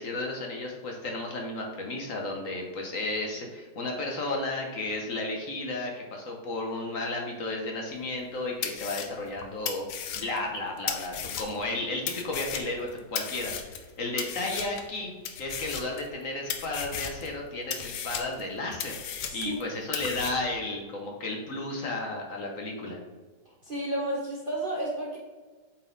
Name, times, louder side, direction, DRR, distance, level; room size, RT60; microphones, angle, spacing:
voice 1, 0.0-15.1 15.4-19.0 19.3-23.0, left 2 dB, 55° left, 1 dB, 1.2 m, -33 dB
sound 1, 8.1-8.2 8.6-11.7 12.1-13.9 14.2-14.9 15.3-16.2 16.5-17.3 17.7-19.6 19.9-20.3, left 8 dB, 75° left, 1.2 m, -35 dB
voice 2, 23.4-25.2, right 1 dB, 40° right, -2 dB, 0.8 m, -32 dB
8.2 x 3.9 x 3.9 m, 1.3 s
omnidirectional pair, 1.9 m